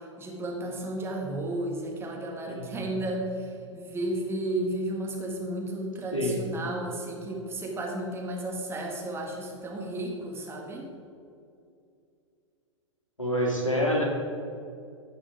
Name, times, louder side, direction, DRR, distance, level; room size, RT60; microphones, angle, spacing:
voice 1, 0.2-10.9, right 1 dB, 15° right, -1 dB, 1.7 m, -33 dB
voice 2, 2.5-3.0 6.1-6.4 13.2-14.0, equal, 90° left, -2 dB, 2.4 m, -27 dB
14.0 x 5.0 x 4.9 m, 2.5 s
figure-of-eight pair, 100°, 16 cm